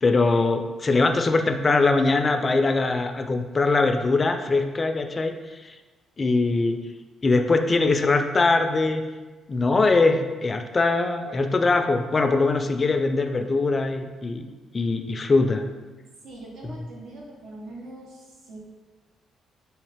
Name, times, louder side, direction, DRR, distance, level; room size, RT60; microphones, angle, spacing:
voice 1, 0.0-5.3 5.6-5.7 6.2-6.8 7.2-9.0 9.5-14.5 14.7-15.6, left 3 dB, 30° left, 6 dB, 0.3 m, -22 dB
voice 2, 16.2-18.6, right 2 dB, 85° right, -3 dB, 1.0 m, -42 dB
3.9 x 2.8 x 3.3 m, 1.3 s
cardioid pair, 90°, 0 cm